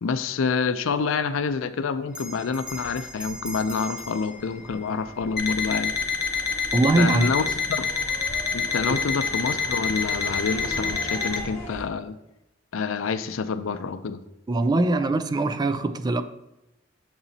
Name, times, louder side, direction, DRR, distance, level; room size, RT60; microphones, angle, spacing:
voice 1, 0.0-5.9 6.7-7.9 8.5-12.2 12.7-14.2, left 5 dB, 85° left, 0.5 m, -27 dB
sound 1, 2.1-11.8, equal, 15° left, 1.8 m, -41 dB
Bell, 2.1-7.0, equal, 5° right, 0.8 m, -42 dB
Alarm, 5.4-11.4, left 5 dB, 55° left, 0.8 m, -27 dB
voice 2, 6.7-7.3 8.9-9.0 14.5-16.2, right 2 dB, 20° right, 0.3 m, -22 dB
6.9 x 6.9 x 2.8 m
head